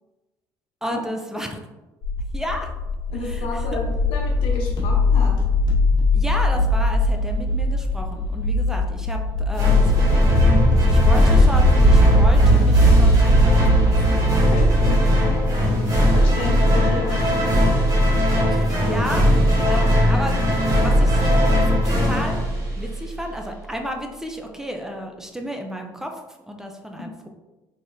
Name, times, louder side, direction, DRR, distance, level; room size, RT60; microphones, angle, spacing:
voice 1, 0.8-1.6 2.3-2.7 3.2-3.8 6.1-14.2 18.5-22.4 22.8-27.3, equal, 5° right, 3 dB, 0.5 m, -32 dB
sound 1, 2.0-15.0, left 1 dB, 55° left, 1.4 m, -19 dB
voice 2, 3.1-5.4 14.5-15.0 16.1-17.3, left 2 dB, 85° left, 1 dB, 0.8 m, -31 dB
sound 2, 9.5-23.2, equal, 40° right, 1.5 m, -19 dB
3.6 x 3.4 x 2.6 m, 1.1 s
cardioid pair, 105°, 9 cm